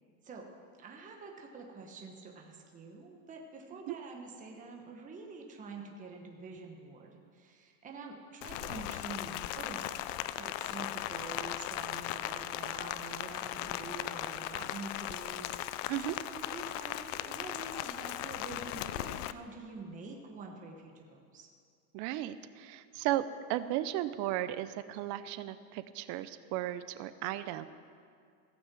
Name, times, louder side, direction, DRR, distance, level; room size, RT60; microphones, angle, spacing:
voice 1, 0.8-21.5, right 3 dB, 20° right, 1 dB, 1.2 m, -47 dB
Rain, 8.4-19.3, left 14 dB, 75° left, 0.6 m, -38 dB
voice 2, 21.9-23.2 23.5-27.7, right 14 dB, 50° right, 13 dB, 0.7 m, -35 dB
16.0 x 6.1 x 7.6 m, 2.3 s
supercardioid pair, 150°, 38 cm